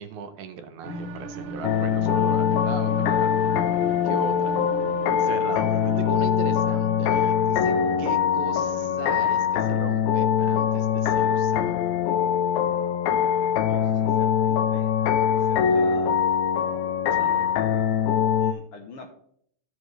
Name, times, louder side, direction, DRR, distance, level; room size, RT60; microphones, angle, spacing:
voice 1, 0.0-3.5 4.0-4.5 5.2-11.6 17.1-17.5, right 6 dB, 85° right, 7 dB, 2.2 m, -37 dB
sound 1, 0.8-10.2, equal, 65° right, 1.6 m, -36 dB
sound 2, 1.6-18.5, left 8 dB, 90° left, 2.0 m, -23 dB
voice 2, 13.4-16.2 18.4-19.1, left 3 dB, 65° left, 3 dB, 1.5 m, -45 dB
15.0 x 5.3 x 3.1 m, 0.69 s
omnidirectional pair, 3.3 m